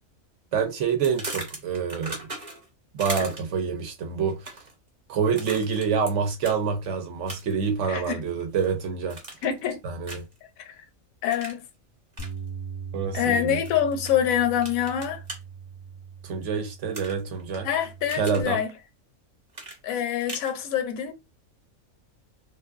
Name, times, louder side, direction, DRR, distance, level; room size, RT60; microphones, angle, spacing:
voice 1, 0.5-2.2 2.9-4.6 5.1-9.2 9.8-10.2 12.9-13.6 16.2-17.7 18.1-18.6, right 6 dB, 65° right, 0.9 m, -27 dB
sound 1, 1.0-2.7 3.0-3.6 4.3-4.7 5.4-6.1 6.4-6.6 7.3-7.7 8.0-8.7 9.1-9.6 10.0-10.4 11.3-11.6 12.1-12.3 13.6-14.1 14.6-15.4 16.9-17.6 17.9-18.5 19.5-20.5, right 2 dB, 30° right, 0.8 m, -37 dB
voice 2, 7.9-8.2 9.4-9.8 10.7-10.8 11.2-11.7 13.1-15.2 17.6-18.7 19.8-21.1, left 9 dB, 80° left, 1.0 m, -25 dB
Bass guitar, 12.2-18.4, right 6 dB, 40° left, 0.4 m, -40 dB
2.5 x 2.5 x 2.3 m
omnidirectional pair, 1.4 m